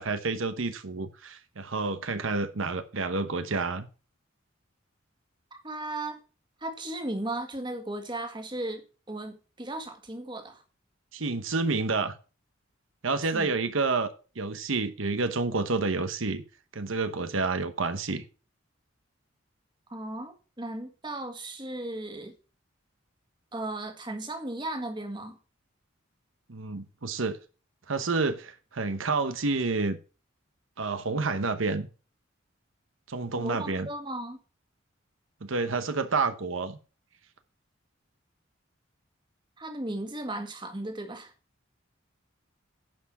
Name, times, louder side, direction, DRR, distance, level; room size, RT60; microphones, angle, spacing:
voice 1, 0.0-3.9 11.1-12.1 13.0-14.1 14.4-16.4 16.7-18.2 26.5-27.4 27.9-30.0 30.8-31.9 33.1-33.9 35.4-36.8, right 3 dB, 80° right, 1.0 m, -29 dB
voice 2, 5.5-6.2 6.6-10.6 13.2-13.5 19.9-22.3 23.5-25.4 33.3-34.4 39.6-41.3, right 1 dB, 25° right, 1.7 m, -36 dB
10.5 x 5.8 x 6.0 m
head